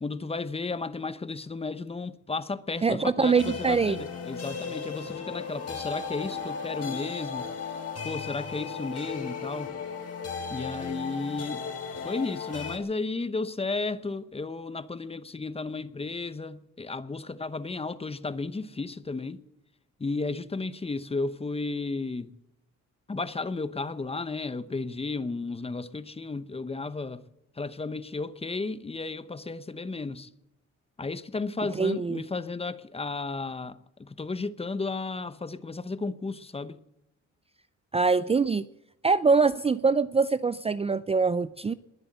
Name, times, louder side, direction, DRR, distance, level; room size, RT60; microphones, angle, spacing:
voice 1, 0.0-7.5 8.0-9.7 10.5-11.7 11.9-19.4 20.0-22.3 23.1-27.3 27.6-30.3 31.0-36.8, left 3 dB, 20° left, 0.9 m, -33 dB
voice 2, 2.8-4.0 31.8-32.2 37.9-38.7 39.0-41.7, right 4 dB, 20° right, 0.5 m, -23 dB
sound 1, 3.2-12.8, left 6 dB, 55° left, 3.2 m, -36 dB
21.5 x 8.0 x 7.9 m
cardioid pair, 90°, 30 cm